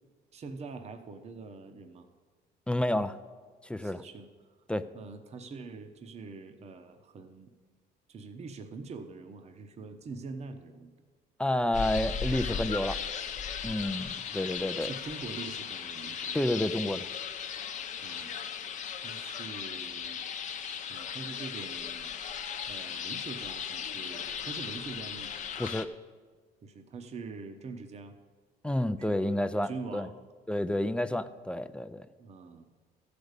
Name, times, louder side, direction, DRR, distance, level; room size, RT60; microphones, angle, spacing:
voice 1, 0.3-2.1 3.8-4.3 4.9-7.5 8.1-10.9 13.6-13.9 14.3-16.4 18.0-18.4 19.0-20.2 20.9-22.1 22.7-25.3 26.6-28.2 28.8-30.1 32.2-32.7, right 4 dB, 40° right, 7 dB, 0.9 m, -44 dB
voice 2, 2.7-3.2 3.6-4.0 4.7-4.8 11.4-13.0 13.6-14.9 16.3-17.1 25.6-25.9 28.6-30.1 30.5-32.1, left 1 dB, 5° left, 12 dB, 0.4 m, -30 dB
sound 1, 11.7-25.9, left 7 dB, 45° left, 0.7 m, -37 dB
13.5 x 5.2 x 8.1 m, 1.5 s
cardioid pair, 110°, 17 cm